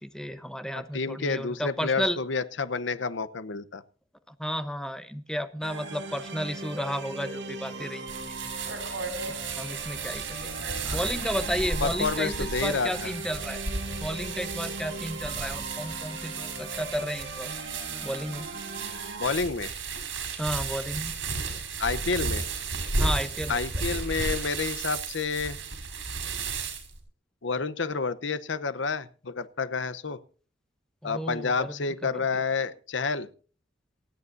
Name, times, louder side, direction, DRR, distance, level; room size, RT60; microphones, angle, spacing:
voice 1, 0.0-2.2 4.4-8.1 9.5-10.3 10.9-13.6 14.0-17.5 18.0-18.5 20.4-21.1 23.0-23.6 31.0-31.8 32.1-32.2, equal, 5° left, 11 dB, 0.9 m, -32 dB
voice 2, 0.7-3.8 10.8-11.1 11.8-13.1 19.2-19.7 21.8-22.5 23.5-25.6 27.4-30.2 31.0-33.3, left 4 dB, 80° left, 14 dB, 0.9 m, -29 dB
sound 1, 5.6-19.3, right 2 dB, 70° right, 4.3 m, -40 dB
sound 2, 8.1-27.0, right 4 dB, 90° right, 5.2 m, -34 dB
27.5 x 9.4 x 2.6 m, 0.39 s
head